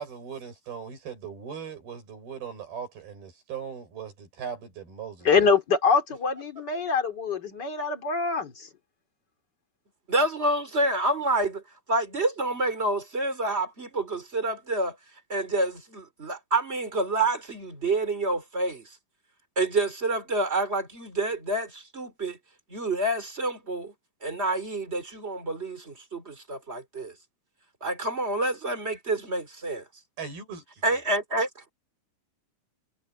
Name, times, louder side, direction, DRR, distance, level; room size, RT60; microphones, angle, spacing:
voice 1, 0.0-5.5 30.2-30.6, right 7 dB, 90° right, 8.1 m, -39 dB
voice 2, 5.2-8.7, left 5 dB, 30° left, 2.6 m, -24 dB
voice 3, 10.1-11.6 11.9-14.9 15.3-18.8 19.6-22.4 22.7-23.9 24.2-27.1 27.8-29.8 30.8-31.5, right 2 dB, 20° right, 3.1 m, -28 dB
omnidirectional pair, 4.2 m